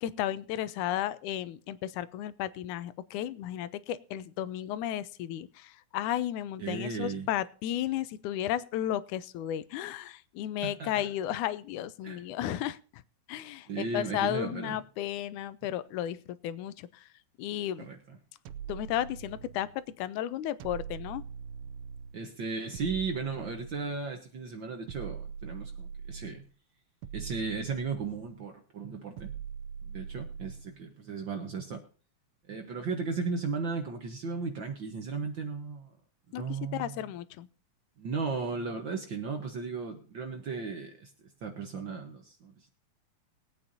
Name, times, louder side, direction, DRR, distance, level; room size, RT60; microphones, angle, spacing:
voice 1, 0.0-13.0 13.3-17.0 17.4-17.9 18.7-19.7 20.0-21.2 36.3-37.5, left 12 dB, 90° left, 16 dB, 2.1 m, -34 dB
voice 2, 6.6-7.3 10.6-11.1 12.0-12.2 13.7-14.8 17.8-18.0 22.1-26.4 27.1-29.3 29.8-31.8 32.5-35.9 36.3-37.0 38.0-41.1 41.4-42.5, right 4 dB, 55° right, 5 dB, 1.3 m, -35 dB
sound 1, 18.5-19.8 20.6-22.2 22.7-24.2 24.9-26.5 27.0-28.4 29.2-30.8, right 7 dB, 85° right, 1.3 m, -42 dB
21.0 x 8.8 x 2.7 m, 0.40 s
omnidirectional pair, 3.4 m